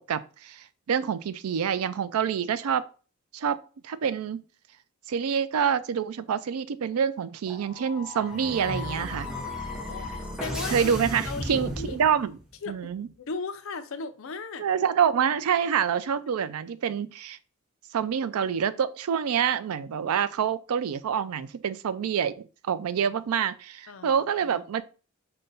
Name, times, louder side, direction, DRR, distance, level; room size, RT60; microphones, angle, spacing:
voice 1, 0.0-2.9 3.3-3.6 3.8-4.4 5.1-9.3 10.7-12.4 12.7-13.1 14.6-17.4 17.9-22.3 22.6-24.8, right 7 dB, 90° right, 0.4 m, -27 dB
sound 1, 7.5-12.5, left 1 dB, 5° right, 0.7 m, -35 dB
voice 2, 9.3-10.9 11.3-12.0 12.6-14.7 16.3-16.5 23.9-24.6, left 4 dB, 65° left, 0.5 m, -38 dB
5.2 x 2.2 x 3.9 m
head